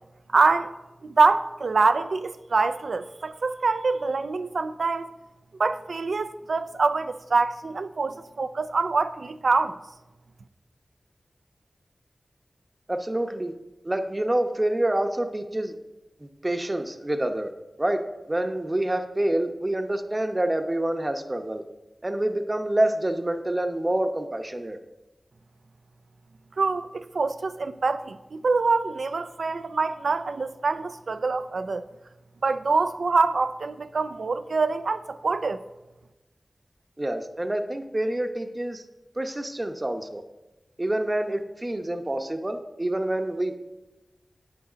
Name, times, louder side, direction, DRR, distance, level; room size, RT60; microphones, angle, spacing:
voice 1, 0.3-0.7 1.0-5.1 5.6-9.8 26.6-31.8 32.4-35.6, right 4 dB, 80° right, 0.5 m, -25 dB
voice 2, 12.9-13.5 13.8-15.7 16.2-17.5 17.8-18.0 18.3-21.6 22.0-24.8 37.0-38.8 39.2-40.2 40.8-43.6, right 1 dB, 25° right, 0.9 m, -27 dB
9.7 x 6.8 x 5.1 m
wide cardioid pair, 60°, 0 cm